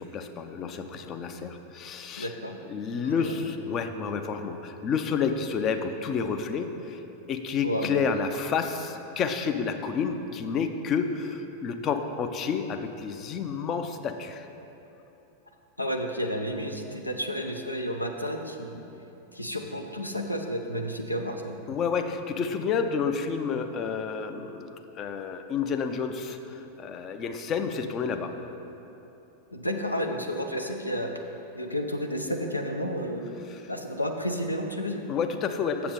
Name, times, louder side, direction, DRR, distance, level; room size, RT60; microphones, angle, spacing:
voice 1, 0.0-2.3 2.7-7.0 7.3-14.5 21.7-28.3 33.5-33.6 35.1-35.9, left 6 dB, 30° left, 7 dB, 0.5 m, -30 dB
voice 2, 2.2-2.6 3.0-3.3 7.6-7.9 15.8-18.9 19.3-21.6 29.5-31.2 31.5-33.3 33.7-35.0, equal, 85° left, 4 dB, 0.6 m, -31 dB
7.1 x 6.9 x 5.1 m, 3.0 s
figure-of-eight pair, 90°, 0 cm